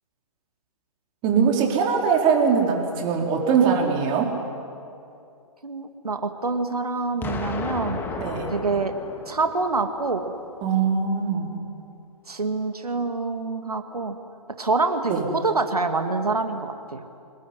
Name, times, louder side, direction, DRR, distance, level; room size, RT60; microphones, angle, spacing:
voice 1, 1.2-4.3 8.2-8.5 10.6-11.5 15.1-15.2, right 6 dB, 25° right, 1 dB, 4.4 m, -21 dB
voice 2, 5.6-8.0 8.5-8.9 9.3-10.3 12.3-14.2 14.6-17.0, right 3 dB, 85° right, 6 dB, 2.2 m, -26 dB
Explosion, 7.2-10.2, left 4 dB, 10° left, 1.8 m, -33 dB
26.5 x 20.0 x 10.0 m, 2.6 s
figure-of-eight pair, 135°, 19 cm